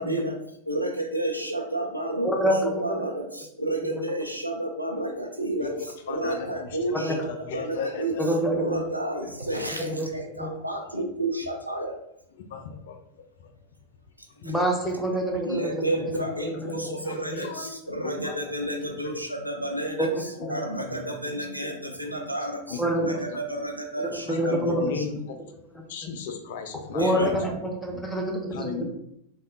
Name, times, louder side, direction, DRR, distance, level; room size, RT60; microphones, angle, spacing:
voice 1, 0.0-8.1 8.5-12.0 14.2-14.5 15.4-25.1 27.0-27.3, right 1 dB, 90° right, 2 dB, 0.4 m, -31 dB
voice 2, 2.2-3.0 3.9-4.0 6.9-7.2 8.2-8.8 9.9-10.1 10.4-10.5 14.4-15.8 16.6-16.9 20.0-20.1 20.4-20.5 22.8-23.1 24.3-24.8 26.9-28.8, right 1 dB, 5° left, 0 dB, 0.6 m, -26 dB
voice 3, 5.6-6.7 7.1-8.3 9.2-9.3 12.5-13.0 13.4-13.5 14.4-14.5 17.0-17.7 18.0-19.1 20.4-20.5 20.8-21.2 21.6-21.7 22.0-22.1 22.7-22.8 23.3-23.4 24.1-25.4 25.9-27.5 28.5-28.8, left 6 dB, 55° left, 6 dB, 0.4 m, -36 dB
3.3 x 2.3 x 2.6 m, 0.76 s
figure-of-eight pair, 90°, 0 cm